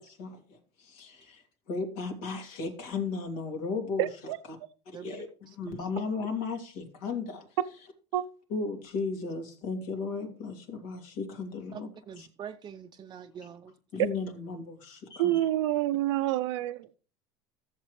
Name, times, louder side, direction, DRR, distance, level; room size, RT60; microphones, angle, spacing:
voice 1, 0.0-4.1 4.5-4.6 4.9-7.6 8.5-11.9 12.2-12.3 13.9-15.5, left 4 dB, 70° left, 2.8 m, -35 dB
voice 2, 4.0-4.4 8.1-8.2 15.2-16.9, right 14 dB, 90° right, 0.6 m, -27 dB
voice 3, 4.9-5.9 11.7-13.8, right 8 dB, 30° right, 0.6 m, -45 dB
14.0 x 7.4 x 3.2 m
supercardioid pair, 105°, 14 cm